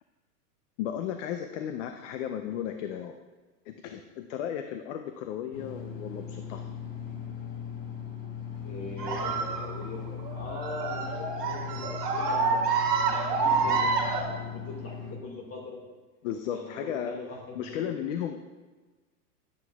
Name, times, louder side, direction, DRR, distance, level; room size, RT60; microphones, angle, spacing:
voice 1, 0.8-3.2 3.7-6.7 16.2-17.2 17.6-18.5, left 9 dB, 55° left, 7 dB, 0.6 m, -34 dB
sound 1, 5.5-15.2, left 7 dB, 80° left, 1.3 m, -39 dB
voice 2, 8.6-12.6 13.0-15.8 16.5-18.0, left 2 dB, 30° left, 0 dB, 1.9 m, -41 dB
sound 2, 9.0-14.2, right 5 dB, 80° right, 1.5 m, -28 dB
9.9 x 7.7 x 2.3 m, 1.3 s
hypercardioid pair, 120°, 47 cm